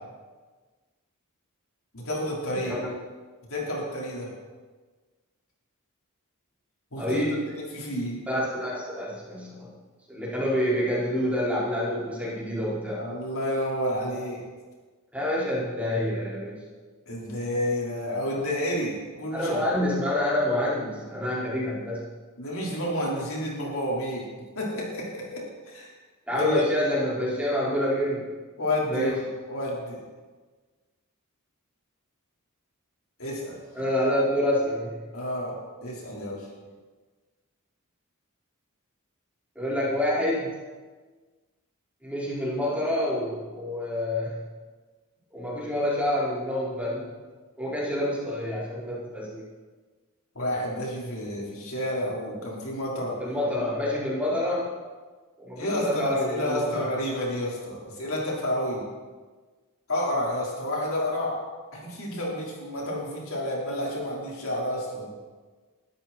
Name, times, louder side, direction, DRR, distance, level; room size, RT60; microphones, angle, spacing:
voice 1, 1.9-2.7 3.5-4.3 6.9-7.2 7.5-8.2 13.0-14.4 17.1-19.6 22.4-24.2 24.5-25.4 25.7-25.9 26.4-26.6 28.6-29.2 29.5-30.0 33.2-33.6 35.1-35.5 35.8-36.5 50.3-53.2 55.6-58.8 59.9-61.4 61.7-65.1, left 1 dB, 65° left, -4 dB, 4.8 m, -30 dB
voice 2, 7.0-7.5 8.3-9.7 10.1-13.1 15.1-16.7 19.3-22.0 26.3-28.3 28.9-29.2 33.7-35.0 39.6-40.6 42.0-44.4 45.3-47.1 47.6-49.4 53.2-54.7 55.4-56.9, left 1 dB, 5° right, -8 dB, 5.4 m, -27 dB
22.5 x 13.0 x 4.6 m, 1.4 s
head